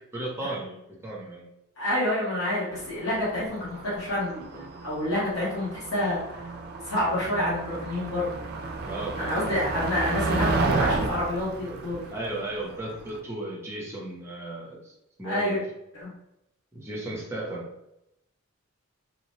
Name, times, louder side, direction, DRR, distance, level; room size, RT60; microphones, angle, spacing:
voice 1, 0.1-1.4 8.8-9.6 12.1-14.9 15.2-15.6 16.7-17.6, right 1 dB, 10° right, -3 dB, 0.6 m, -35 dB
voice 2, 1.8-3.6 3.8-6.4 6.8-8.4 9.2-12.0 15.2-15.6 15.9-16.1, left 1 dB, 65° left, -8 dB, 1.0 m, -28 dB
Motor vehicle (road), 2.8-13.1, right 3 dB, 45° right, 0.3 m, -32 dB
2.7 x 2.1 x 3.0 m, 0.83 s
head